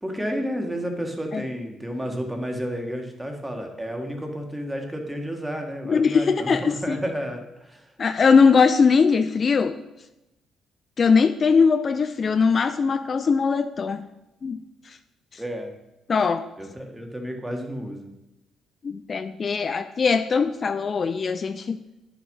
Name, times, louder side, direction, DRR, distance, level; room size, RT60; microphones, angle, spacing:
voice 1, 0.0-7.9 15.4-15.7 16.6-18.1, equal, 10° right, 3 dB, 1.7 m, -31 dB
voice 2, 5.9-7.0 8.0-9.8 11.0-14.0 14.4-14.6 14.9-15.0 15.3-15.4 16.1-16.5 18.8-21.8, left 5 dB, 45° left, 9 dB, 0.4 m, -20 dB
9.4 x 5.9 x 5.4 m, 0.93 s
cardioid pair, 90°, 0 cm